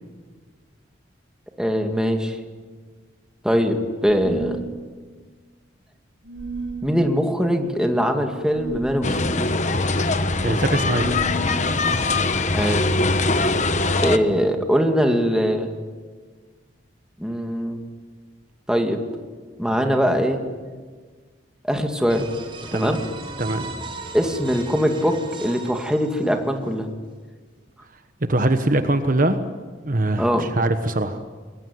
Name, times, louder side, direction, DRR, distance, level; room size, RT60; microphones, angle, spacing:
voice 1, 1.6-2.4 3.4-4.6 6.8-9.4 12.5-12.9 14.0-15.7 17.2-17.8 18.7-19.0 19.6-20.4 21.6-22.3 22.7-23.0 24.1-26.9 30.2-30.5, equal, 5° right, 3 dB, 2.3 m, -22 dB
sound 1, 4.0-4.7 6.2-6.9 8.5-9.2 10.9-11.6, right 1 dB, 90° right, 7.5 m, -32 dB
sound 2, 9.0-14.2, left 2 dB, 40° left, 1.2 m, -22 dB
voice 2, 10.4-11.3 22.7-23.0 23.4-23.7 28.3-29.4 29.8-31.2, right 1 dB, 45° right, 8 dB, 1.3 m, -22 dB
sound 3, 22.1-26.7, right 3 dB, 25° right, 4.2 m, -37 dB
27.0 x 21.5 x 9.5 m, 1.5 s
head